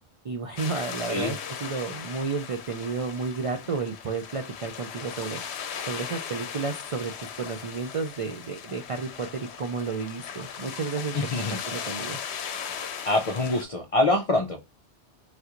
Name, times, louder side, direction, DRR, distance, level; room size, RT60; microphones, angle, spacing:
voice 1, 0.2-5.4 5.9-12.2, right 4 dB, 60° right, 0.3 m, -32 dB
sound 1, 0.6-13.6, left 8 dB, 75° left, 0.8 m, -38 dB
voice 2, 11.1-11.6 13.1-14.6, left 2 dB, 55° left, 0.4 m, -25 dB
3.3 x 2.4 x 2.8 m
omnidirectional pair, 1.1 m